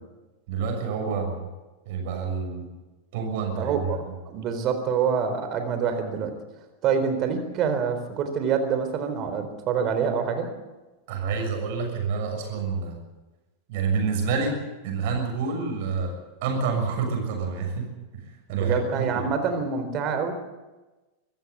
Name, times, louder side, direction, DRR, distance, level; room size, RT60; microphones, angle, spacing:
voice 1, 0.5-1.5 1.8-2.7 3.1-4.1 11.1-13.0 13.7-14.6 14.8-16.2 16.4-17.9 18.1-18.2 18.5-19.2, right 5 dB, 50° right, 3 dB, 6.7 m, -28 dB
voice 2, 3.6-6.3 6.8-10.5 18.5-20.3, right 6 dB, 35° right, 8 dB, 4.0 m, -26 dB
25.5 x 14.5 x 8.4 m, 1.1 s
figure-of-eight pair, 90°, 0 cm